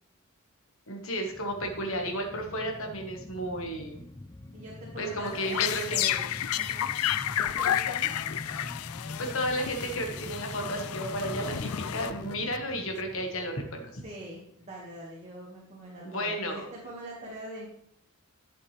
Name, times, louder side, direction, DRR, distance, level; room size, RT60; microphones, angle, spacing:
voice 1, 0.9-4.0 5.0-6.0 9.2-14.0 16.0-16.7, equal, 65° left, 2 dB, 1.5 m, -33 dB
sound 1, 1.2-14.4 14.7-14.8, left 2 dB, 15° left, 0.4 m, -43 dB
voice 2, 4.5-7.0 7.4-8.2 14.0-17.7, right 1 dB, 30° right, -4 dB, 1.8 m, -43 dB
sound 2, 5.2-12.5, left 11 dB, 80° left, 0.4 m, -31 dB
11.0 x 7.3 x 3.3 m, 0.70 s
head